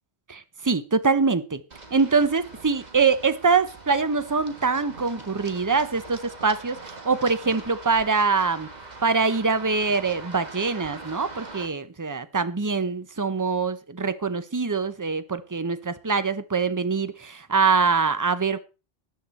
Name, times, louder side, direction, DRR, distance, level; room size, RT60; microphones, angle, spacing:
voice 1, 0.3-1.6 1.9-8.7 9.0-18.6, right 4 dB, 20° right, 0.8 m, -24 dB
Run, 1.7-11.7, right 3 dB, 35° right, 1.7 m, -42 dB
13.0 x 10.5 x 4.2 m
omnidirectional pair, 1.2 m